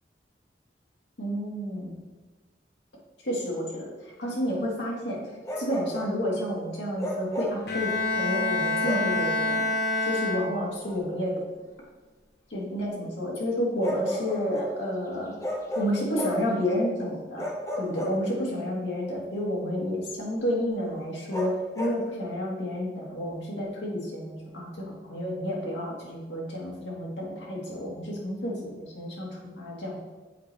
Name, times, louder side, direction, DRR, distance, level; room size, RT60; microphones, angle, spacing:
voice 1, 1.2-2.0 3.2-5.2 5.6-9.6 10.1-11.4 12.5-15.3 15.8-17.5 17.8-30.0, equal, 85° left, -3 dB, 1.8 m, -30 dB
Bark, 5.4-6.2 7.0-7.7 8.8-9.2 10.8-11.0 13.8-14.8 15.4-16.5 17.4-18.6 21.3-22.0, equal, 15° left, 0.7 m, -33 dB
Bowed string instrument, 7.7-10.9, left 2 dB, 60° left, 1.1 m, -27 dB
7.8 x 4.3 x 3.3 m, 1.3 s
head